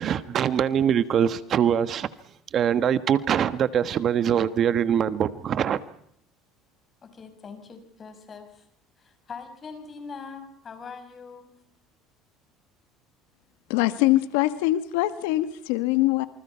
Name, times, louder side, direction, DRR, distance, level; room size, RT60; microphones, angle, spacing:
voice 1, 0.0-2.1 2.5-5.8, right 9 dB, 45° right, 13 dB, 1.3 m, -23 dB
voice 2, 7.0-8.7 9.0-11.5, left 5 dB, 30° left, 8 dB, 6.2 m, -42 dB
voice 3, 13.7-16.3, left 16 dB, 85° left, 12 dB, 1.3 m, -23 dB
28.0 x 25.0 x 5.7 m, 0.70 s
cardioid pair, 120°, 0 cm